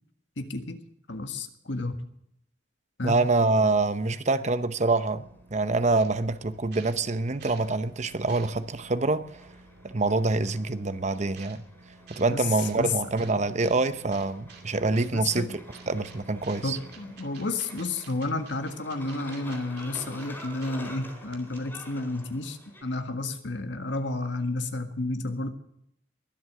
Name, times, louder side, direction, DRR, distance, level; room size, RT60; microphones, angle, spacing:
voice 1, 0.4-0.8 1.1-2.1 3.0-3.2 12.3-12.5 12.7-13.0 15.1-15.6 16.6-25.5, left 2 dB, 75° left, 1.6 m, -31 dB
voice 2, 3.0-9.5 9.8-11.6 12.1-15.5 15.9-16.8, right 3 dB, 40° right, 0.8 m, -26 dB
sound 1, 4.1-22.8, equal, 10° left, 4.8 m, -50 dB
sound 2, 5.0-17.2, right 2 dB, 80° right, 7.9 m, -54 dB
sound 3, 6.0-6.1 6.5-7.7 8.1-8.8 9.6-9.7 11.3-11.6 12.1-12.3 12.6-12.8 13.2-13.8 14.1-14.6 15.0-15.4 15.7-16.2 16.4-20.7 21.0-21.1 21.3-21.8, right 7 dB, 60° right, 2.5 m, -50 dB
22.0 x 8.0 x 6.7 m
head